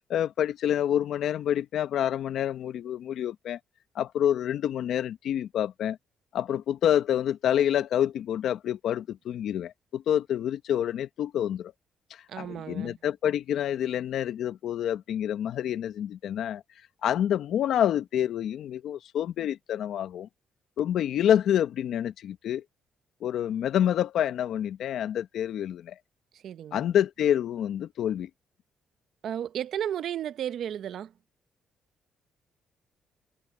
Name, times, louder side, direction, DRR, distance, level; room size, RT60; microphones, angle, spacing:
voice 1, 0.1-3.6 3.9-6.0 6.3-11.7 12.1-16.6 17.0-20.3 20.8-22.6 23.2-25.9 26.7-28.3, left 10 dB, 75° left, 1.0 m, -27 dB
voice 2, 12.3-13.0 26.3-26.9 29.2-31.1, right 10 dB, 70° right, 0.9 m, -34 dB
cardioid pair, 90°, 0 cm